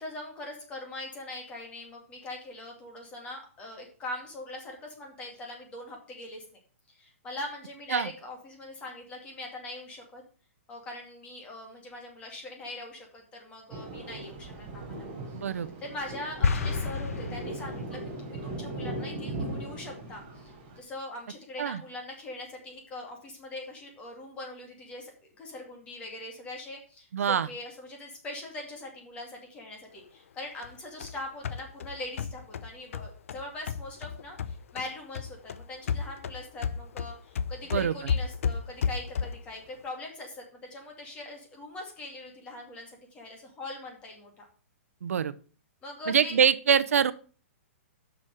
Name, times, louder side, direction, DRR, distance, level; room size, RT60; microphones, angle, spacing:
voice 1, 0.0-6.4 6.9-10.2 10.7-40.4 40.7-44.5 45.8-46.4, left 2 dB, 15° left, 1 dB, 2.4 m, -42 dB
Thunder, 13.7-20.8, right 2 dB, 35° right, 3.7 m, -38 dB
voice 2, 15.3-15.7 21.6-21.8 27.1-27.5 37.7-37.9 45.0-45.3 46.1-47.1, right 7 dB, 90° right, 14 dB, 0.7 m, -24 dB
sound 1, 16.4-18.1, left 5 dB, 90° left, 1.1 m, -29 dB
sound 2, 30.6-34.9 35.1-39.5, left 6 dB, 70° left, 0.7 m, -33 dB
7.3 x 6.4 x 6.4 m, 0.40 s
hypercardioid pair, 165°, 8 cm